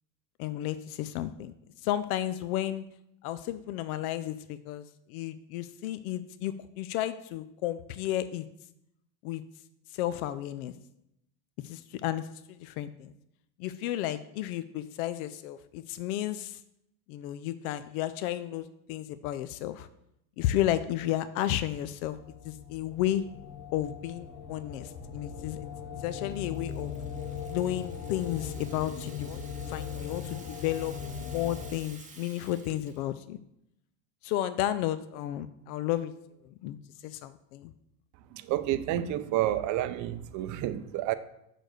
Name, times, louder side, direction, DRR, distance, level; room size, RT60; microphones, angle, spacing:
voice 1, 0.4-1.5 1.8-2.9 3.2-8.5 9.2-9.4 9.9-10.7 11.6-13.1 13.6-16.6 17.1-19.9 20.4-22.2 22.4-23.2 23.7-25.7 26.0-26.9 27.5-29.4 29.7-33.4 34.2-36.1 36.4-36.8 37.0-37.7, left 13 dB, 70° left, 0.6 m, -33 dB
sound 1, 21.8-31.7, left 7 dB, 50° left, 1.4 m, -39 dB
Rattle (instrument), 26.1-33.0, right 4 dB, 15° right, 1.1 m, -53 dB
voice 2, 38.3-41.1, right 13 dB, 40° right, 0.5 m, -30 dB
6.6 x 4.0 x 6.3 m
supercardioid pair, 125°, 45 cm